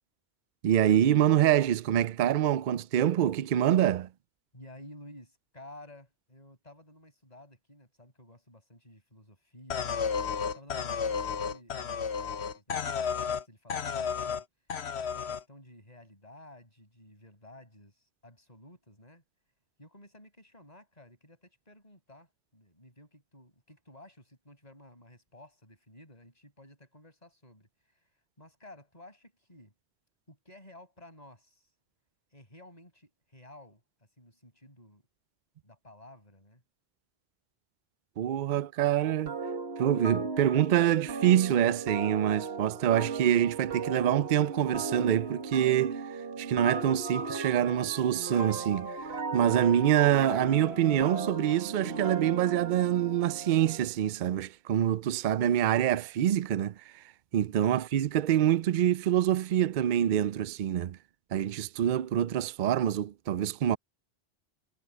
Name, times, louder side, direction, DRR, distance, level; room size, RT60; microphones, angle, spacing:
voice 1, 0.6-4.1 38.2-39.3 39.8-46.0 46.4-49.1 49.3-57.0 57.3-61.0 61.3-63.8, right 11 dB, 55° right, 0.6 m, -26 dB
voice 2, 4.5-14.4 15.0-19.2 19.8-28.1 28.4-29.7 30.3-31.7 32.3-35.0 35.6-36.6 57.4-57.6, left 1 dB, 40° left, 6.8 m, -54 dB
sound 1, 9.7-13.4 13.7-14.4 14.7-15.4, left 6 dB, 80° left, 1.2 m, -32 dB
sound 2, 39.3-53.9, right 4 dB, 75° right, 2.2 m, -37 dB
omnidirectional pair, 1.1 m